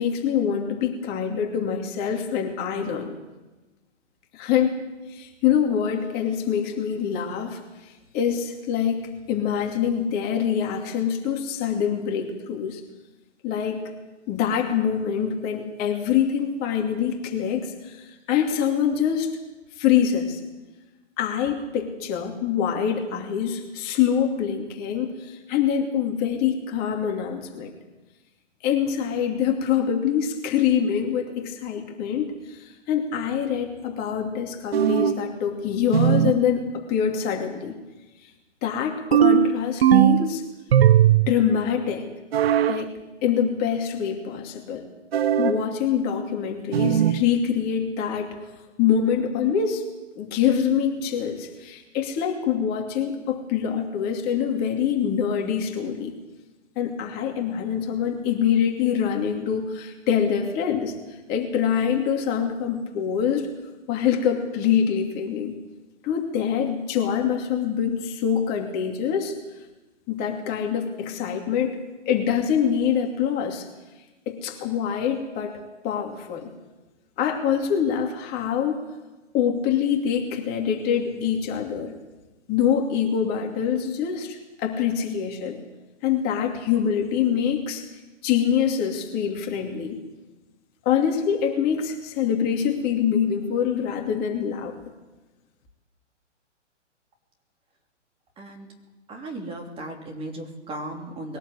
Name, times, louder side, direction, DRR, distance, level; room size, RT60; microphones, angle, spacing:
voice 1, 0.0-3.1 4.3-4.8 5.1-9.0 9.3-12.8 13.4-13.8 14.3-19.3 19.8-20.4 21.2-27.7 28.6-37.7 38.2-38.3 38.6-40.4 41.3-42.1 42.7-42.9 43.2-44.8 45.4-48.3 48.8-49.8 50.1-56.1 56.8-60.9 61.3-63.5 63.9-65.6 66.0-69.3 70.1-73.6 74.3-75.6 75.8-76.5 77.2-78.8 79.3-81.9 82.5-85.6 86.0-87.8 88.2-90.0 90.8-94.8, left 8 dB, 25° left, 2 dB, 2.6 m, -25 dB
sound 1, 34.7-35.3 35.9-36.4 39.1-40.3 40.7-41.4 42.3-42.8 45.1-45.6 46.7-47.2, right 10 dB, 55° right, 0.9 m, -18 dB
voice 2, 98.4-98.7 99.1-101.4, right 1 dB, 15° right, 1 dB, 2.9 m, -36 dB
21.5 x 18.0 x 8.1 m, 1.1 s
hypercardioid pair, 135°, 37 cm